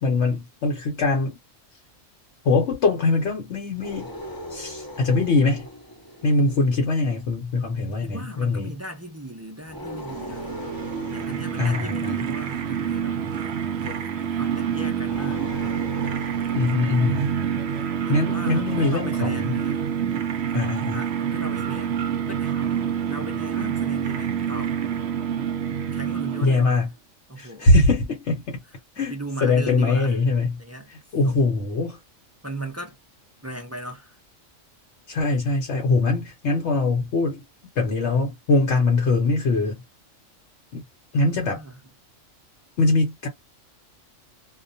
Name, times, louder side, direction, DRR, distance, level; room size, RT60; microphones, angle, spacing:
voice 1, 0.0-1.4 2.4-4.1 4.5-5.7 6.2-8.7 11.6-12.2 16.5-17.2 18.1-19.6 20.5-21.0 26.4-26.9 27.4-28.6 29.0-29.1 29.4-30.6 31.1-32.0 35.1-37.4 37.8-39.8 40.7-40.8 41.1-41.6 42.8-43.3, left 3 dB, 65° left, 1.1 m, -22 dB
sound 1, 3.7-7.3 9.6-12.8 15.0-17.7, equal, 20° left, 0.8 m, -40 dB
voice 2, 7.9-10.6 11.1-13.2 13.8-14.1 14.4-15.4 16.8-17.3 18.0-19.8 20.9-22.0 22.3-22.8 23.1-24.8 25.9-26.9 27.3-27.7 29.0-30.2 30.6-30.9 31.2-31.4 32.4-33.0 33.4-34.2 41.4-41.8, right 1 dB, 20° right, 0.4 m, -37 dB
sound 2, 10.1-26.8, right 8 dB, 65° right, 0.8 m, -27 dB
2.3 x 2.3 x 2.6 m
omnidirectional pair, 1.3 m